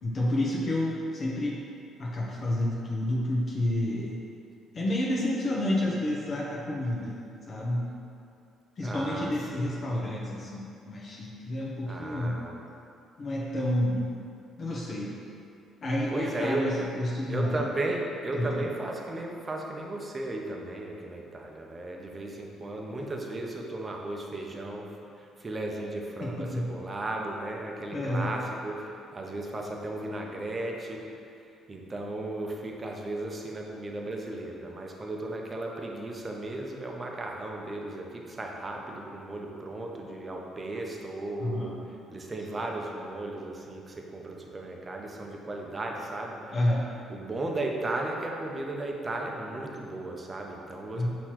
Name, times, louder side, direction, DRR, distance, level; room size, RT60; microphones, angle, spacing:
voice 1, 0.0-1.6 2.0-4.2 4.7-7.2 7.5-7.8 8.8-12.4 13.2-14.1 14.6-15.1 15.8-17.6 18.3-18.7 26.2-26.7 27.9-28.3 41.4-41.8 46.5-46.9 50.9-51.1, left 1 dB, 45° left, -5 dB, 0.8 m, -29 dB
voice 2, 8.8-9.7 11.9-12.6 16.1-16.7 17.3-31.1 31.7-41.8 42.1-46.4 47.1-51.1, right 2 dB, 30° right, 0 dB, 0.6 m, -35 dB
5.5 x 3.0 x 3.0 m, 2.5 s
cardioid pair, 85°, 0 cm